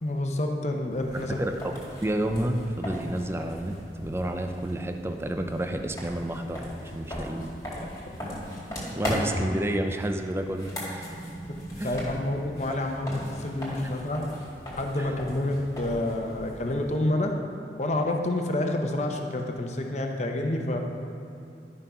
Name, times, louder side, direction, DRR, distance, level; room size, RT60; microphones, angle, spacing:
voice 1, 0.0-1.4 7.8-7.9 11.8-14.2 14.8-17.3 17.8-20.8, left 1 dB, 40° left, 3 dB, 0.8 m, -28 dB
sound 1, 0.9-17.0, equal, 20° left, 2.2 m, -38 dB
voice 2, 1.1-1.7 2.0-7.5 8.9-11.2 11.8-12.0 15.0-15.1, right 1 dB, 15° right, 5 dB, 0.5 m, -30 dB
11.5 x 5.4 x 5.5 m, 2.7 s
head